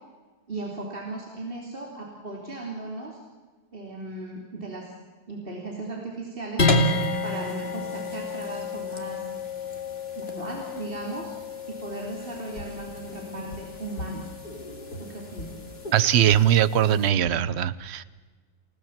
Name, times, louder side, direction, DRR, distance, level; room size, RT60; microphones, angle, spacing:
voice 1, 0.5-3.2 3.7-4.9 5.3-6.7 7.2-9.2 10.1-11.4 11.7-14.3 15.0-15.6, right 2 dB, 35° right, -1 dB, 3.4 m, -36 dB
sound 1, 6.6-17.1, left 2 dB, 40° left, 2.6 m, -31 dB
sound 2, 12.5-17.5, left 1 dB, 75° left, 6.4 m, -41 dB
voice 2, 15.9-18.0, right 10 dB, 50° right, 16 dB, 0.9 m, -21 dB
29.0 x 17.5 x 7.4 m, 1.4 s
omnidirectional pair, 1.6 m